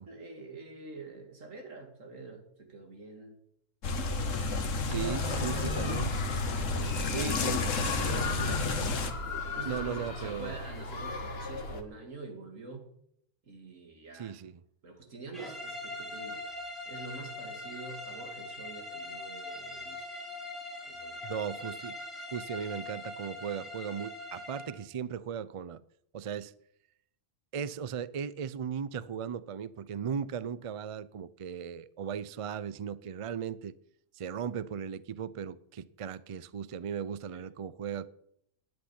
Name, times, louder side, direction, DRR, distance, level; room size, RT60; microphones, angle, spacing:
voice 1, 0.1-3.4 4.8-6.1 6.6-9.2 9.6-12.9 13.5-14.4 14.8-20.1 20.9-21.2 37.3-37.4, right 2 dB, 85° right, 2.8 m, -45 dB
sound 1, 3.8-9.1, left 3 dB, 80° left, 1.6 m, -31 dB
voice 2, 4.9-6.1 7.1-7.6 9.6-10.5 14.1-14.6 21.2-22.0 22.3-25.8 26.1-26.5 27.5-33.7 34.1-38.1, right 7 dB, 50° right, 0.4 m, -37 dB
sound 2, 5.1-11.8, left 3 dB, 50° left, 1.6 m, -38 dB
sound 3, 15.3-24.8, left 2 dB, ahead, 3.0 m, -42 dB
10.5 x 8.8 x 9.9 m
omnidirectional pair, 1.3 m